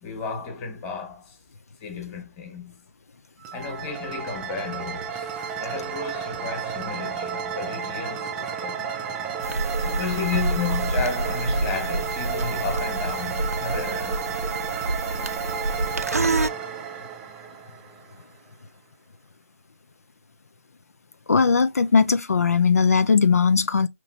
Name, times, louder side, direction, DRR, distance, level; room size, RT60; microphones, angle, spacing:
voice 1, 0.0-1.4 1.8-2.7 3.5-5.2 5.6-8.9 9.8-14.4, left 5 dB, 15° left, 1.5 m, -33 dB
sound 1, 3.4-18.2, right 7 dB, 10° right, 0.4 m, -32 dB
sound 2, 9.4-16.5, right 2 dB, 90° right, 0.6 m, -28 dB
voice 2, 21.3-23.9, left 5 dB, 80° left, 0.4 m, -19 dB
5.7 x 3.0 x 2.7 m
figure-of-eight pair, 155°, 8 cm